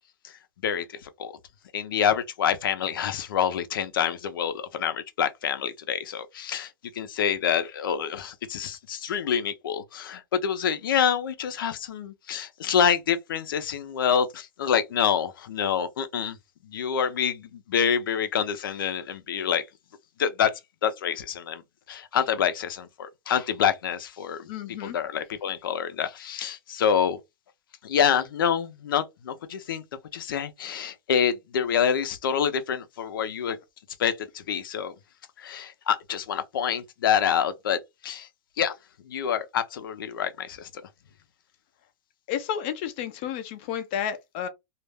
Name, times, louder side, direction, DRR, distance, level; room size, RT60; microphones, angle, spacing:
voice 1, 0.6-1.3 1.7-16.4 16.7-19.6 20.2-20.5 20.8-21.6 21.9-24.5 24.8-27.2 27.8-29.8 30.1-33.6 34.0-34.9 35.4-37.8 38.0-38.3 38.6-38.7 39.1-40.7, left 8 dB, 90° left, 0.6 m, -27 dB
voice 2, 24.5-25.0 42.3-44.5, left 9 dB, 30° left, 0.4 m, -31 dB
2.4 x 2.1 x 3.4 m
supercardioid pair, 170°, 11 cm